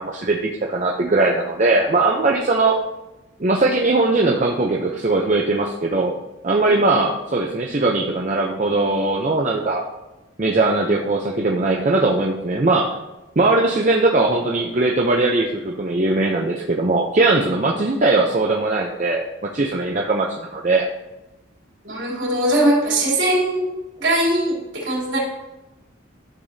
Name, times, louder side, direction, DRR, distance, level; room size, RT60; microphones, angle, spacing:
voice 1, 0.0-2.8 3.4-6.1 6.4-9.8 10.4-13.0 13.4-20.9, right 2 dB, 35° right, 0 dB, 0.6 m, -20 dB
voice 2, 21.8-23.7 24.0-25.2, right 1 dB, 70° right, -3 dB, 3.1 m, -20 dB
11.5 x 6.8 x 2.7 m, 1.0 s
head